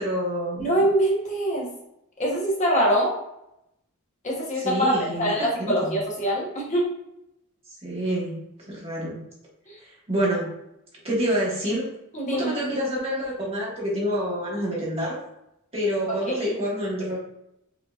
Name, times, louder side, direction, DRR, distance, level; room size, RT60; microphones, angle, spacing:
voice 1, 0.0-0.7 4.6-6.0 7.8-8.3 8.7-9.2 9.8-10.5 11.0-11.9 12.3-15.2 15.7-17.2, equal, 25° right, -5 dB, 1.3 m, -27 dB
voice 2, 0.6-1.7 2.2-3.1 4.2-6.8 9.7-9.8 12.1-12.5 16.4-16.5, equal, 35° left, -4 dB, 1.0 m, -24 dB
5.1 x 2.9 x 2.4 m, 0.82 s
head